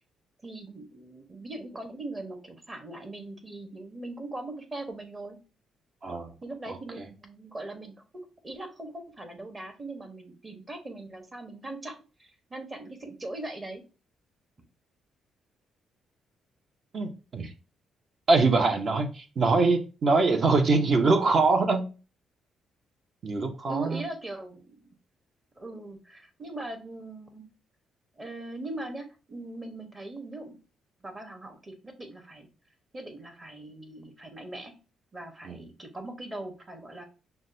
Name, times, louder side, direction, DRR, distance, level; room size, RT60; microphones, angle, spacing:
voice 1, 0.4-5.4 6.4-13.8 23.6-24.9 25.6-27.4 28.2-30.6 31.0-32.5 32.9-34.7 35.1-37.0, right 2 dB, 25° right, 5 dB, 1.0 m, -40 dB
voice 2, 6.0-6.3 6.7-7.0 16.9-17.5 18.3-21.8 23.2-24.0 35.4-35.6, right 3 dB, 45° right, 6 dB, 0.8 m, -24 dB
5.9 x 2.2 x 2.6 m, 0.32 s
cardioid pair, 90°, 0 cm